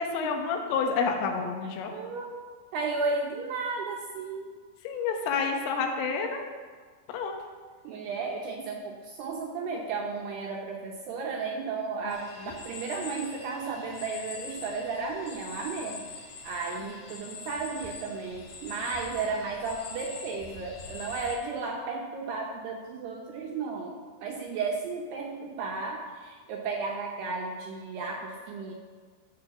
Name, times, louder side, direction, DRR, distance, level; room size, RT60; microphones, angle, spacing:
voice 1, 0.0-1.9 4.9-6.4 7.1-7.3 12.4-12.5, left 5 dB, 90° left, 3 dB, 3.8 m, -29 dB
voice 2, 1.9-2.4 2.7-4.5 7.8-28.7, right 4 dB, 75° right, 0 dB, 2.4 m, -34 dB
sound 1, 12.1-21.4, left 4 dB, 60° left, 2.8 m, -44 dB
12.0 x 6.1 x 6.8 m, 1.5 s
omnidirectional pair, 5.6 m